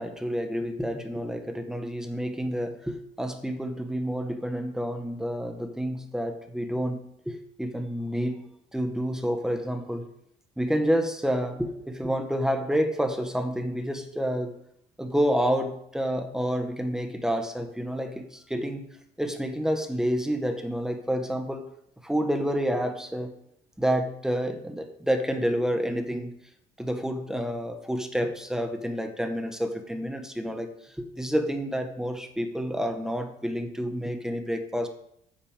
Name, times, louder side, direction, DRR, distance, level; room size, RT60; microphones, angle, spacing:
voice 1, 0.0-8.4 8.7-10.0 10.6-14.6 15.0-21.6 22.0-23.4 23.8-26.3 26.8-30.7 31.0-34.9, equal, 5° right, 6 dB, 1.6 m, -29 dB
9.9 x 6.7 x 7.4 m, 0.72 s
cardioid pair, 110°, 17 cm